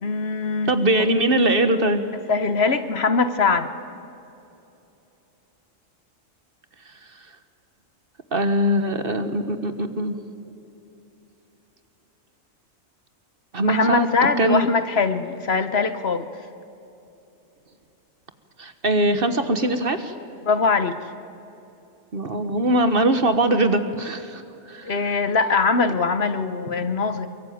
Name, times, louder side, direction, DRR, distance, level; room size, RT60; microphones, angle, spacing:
voice 1, 0.0-0.7 2.3-3.7 13.6-16.3 20.4-21.0 24.8-27.3, left 4 dB, 55° left, 11 dB, 1.2 m, -22 dB
voice 2, 0.7-2.0 8.3-10.2 13.5-14.1 14.4-14.7 18.6-20.1 22.1-24.4 24.7-24.9, right 1 dB, 45° right, 10 dB, 1.5 m, -21 dB
24.0 x 22.5 x 9.4 m, 2.9 s
omnidirectional pair, 1.4 m